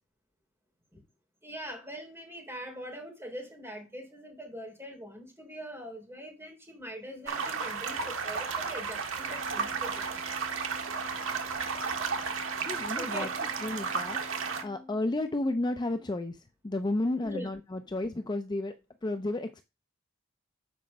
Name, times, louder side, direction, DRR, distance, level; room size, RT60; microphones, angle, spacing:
voice 1, 1.4-10.1 10.7-10.8 13.0-13.3 17.2-17.5, equal, 15° right, 3.5 m, -42 dB
sound 1, 7.3-14.6, right 5 dB, 80° right, 1.4 m, -33 dB
Organ, 9.1-15.7, left 2 dB, 45° right, 3.5 m, -51 dB
voice 2, 12.7-13.3 13.6-14.2 14.6-16.4 16.6-18.7 19.0-19.6, left 2 dB, 20° left, 0.5 m, -32 dB
7.7 x 5.1 x 5.2 m
head